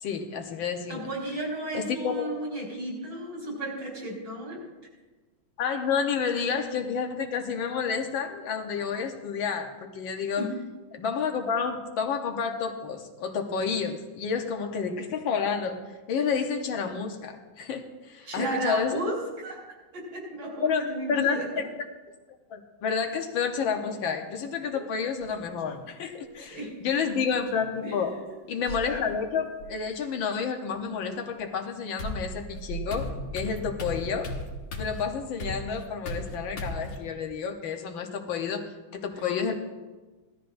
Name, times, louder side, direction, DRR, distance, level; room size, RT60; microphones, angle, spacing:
voice 1, 0.0-1.0 1.7-2.3 5.6-10.5 10.9-15.8 16.1-17.8 18.1-19.0 20.6-21.6 22.5-28.1 28.5-34.3 34.8-38.7 38.9-39.6, left 6 dB, 75° left, 4 dB, 1.7 m, -30 dB
voice 2, 0.9-4.7 10.4-10.5 18.2-19.6 19.9-21.6 24.6-24.8 26.2-27.1 27.8-28.1 39.1-39.3, right 1 dB, 80° right, -3 dB, 4.9 m, -34 dB
sound 1, 25.2-25.8 27.1-27.7 28.7-29.7 31.4-31.5 32.0-37.0, equal, 90° left, 2.4 m, -36 dB
17.0 x 12.5 x 2.6 m, 1.3 s
omnidirectional pair, 2.2 m